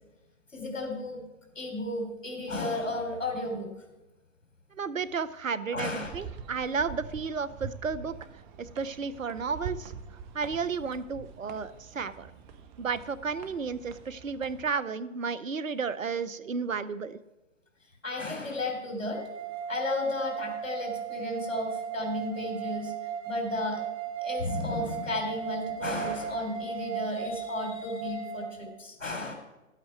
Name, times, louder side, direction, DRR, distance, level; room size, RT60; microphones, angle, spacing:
voice 1, 0.5-1.2 1.5-3.7 5.7-6.1 18.0-19.2 19.7-23.8 24.2-29.3, left 2 dB, 80° left, 3 dB, 3.4 m, -33 dB
voice 2, 4.7-8.1 8.6-9.9 10.3-12.3 12.8-17.2, right 5 dB, 90° right, 15 dB, 0.8 m, -32 dB
sound 1, 6.0-14.7, right 6 dB, 35° right, 1.1 m, -44 dB
sound 2, 19.1-28.5, right 8 dB, 55° right, 2.1 m, -36 dB
12.5 x 8.7 x 4.6 m, 1.0 s
figure-of-eight pair, 120°, 38 cm